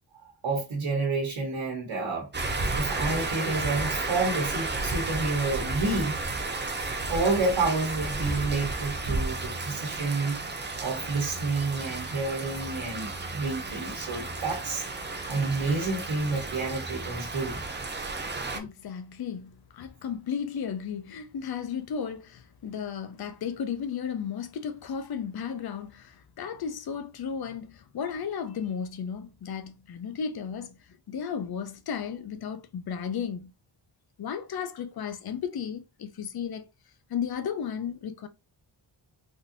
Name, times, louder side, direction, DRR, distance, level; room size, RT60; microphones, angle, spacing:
voice 1, 0.4-6.2 7.0-10.4 10.8-14.8 15.3-17.6, right 3 dB, 90° right, 1.1 m, -29 dB
sound 1, 2.3-18.6, right 2 dB, 25° right, 0.4 m, -33 dB
voice 2, 18.5-30.8 31.1-33.5 34.2-36.7 37.1-38.3, left 7 dB, 55° left, 0.5 m, -34 dB
3.6 x 2.6 x 2.5 m
wide cardioid pair, 175°, 45 cm